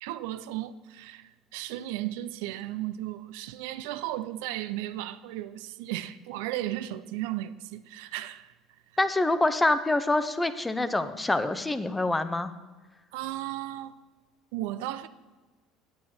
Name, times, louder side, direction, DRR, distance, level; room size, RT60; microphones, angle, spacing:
voice 1, 0.0-8.5 13.1-14.0 14.5-15.1, right 14 dB, 80° right, 0.4 m, -35 dB
voice 2, 9.0-12.5, left 2 dB, 15° left, 0.7 m, -26 dB
8.7 x 8.6 x 4.3 m
hypercardioid pair, 80°, 0 cm